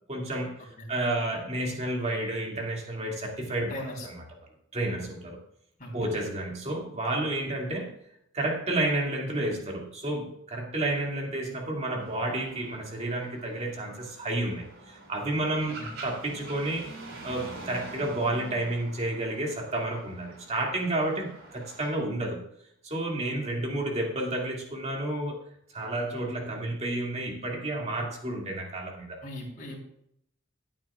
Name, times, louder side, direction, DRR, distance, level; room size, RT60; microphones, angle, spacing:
voice 1, 0.1-4.2 4.7-5.4 5.9-7.9 8.3-15.8 16.0-16.9 17.2-22.4 22.8-25.4 25.7-29.2, right 1 dB, 35° right, -1 dB, 2.4 m, -31 dB
voice 2, 3.7-4.1 5.8-5.9 15.8-15.9 29.2-29.8, left 1 dB, 45° left, -1 dB, 3.7 m, -38 dB
sound 1, 12.0-22.0, right 2 dB, 85° right, 3.0 m, -46 dB
17.5 x 8.9 x 2.4 m, 0.73 s
head